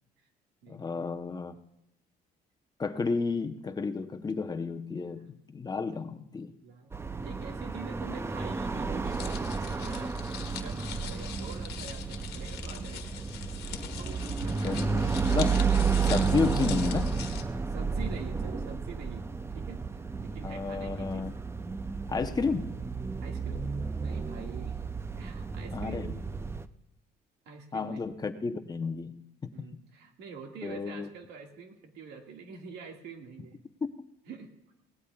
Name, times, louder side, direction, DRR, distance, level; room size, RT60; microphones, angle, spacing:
voice 1, 0.7-1.5 2.8-6.5 14.5-15.6 16.0-17.2 20.4-21.3 22.1-22.8 25.7-26.1 27.7-29.5 30.6-31.1 33.8-33.9, left 4 dB, 25° left, 7 dB, 0.8 m, -32 dB
voice 2, 6.6-6.9 7.2-10.2 10.6-13.4 13.9-14.8 17.7-19.3 19.5-21.3 23.2-23.6 24.0-24.8 25.2-26.2 27.5-28.0 29.5-33.6 34.3-34.5, right 5 dB, 80° right, 3 dB, 1.9 m, -46 dB
sound 1, 6.9-26.6, right 5 dB, 15° right, 0.5 m, -32 dB
sound 2, 9.0-17.4, left 9 dB, 70° left, 1.4 m, -42 dB
21.0 x 18.0 x 2.4 m, 0.86 s
cardioid pair, 110°, 17 cm